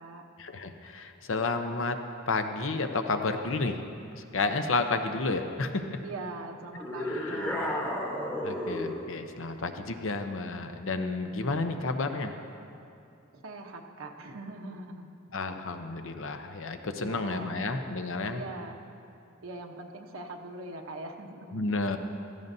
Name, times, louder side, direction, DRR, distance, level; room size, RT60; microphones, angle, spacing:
voice 1, 0.4-2.0 2.3-3.8 4.2-6.0 7.1-7.4 8.4-12.4 15.3-18.4 21.5-22.0, left 3 dB, 65° left, 7 dB, 0.7 m, -31 dB
voice 2, 6.0-7.9 13.3-15.1 17.0-17.6 18.3-18.8 19.4-21.7, right 2 dB, 75° right, 1 dB, 0.9 m, -41 dB
sound 1, 6.8-9.1, left 1 dB, 10° left, 1.1 m, -32 dB
16.0 x 14.0 x 2.7 m, 2.6 s
head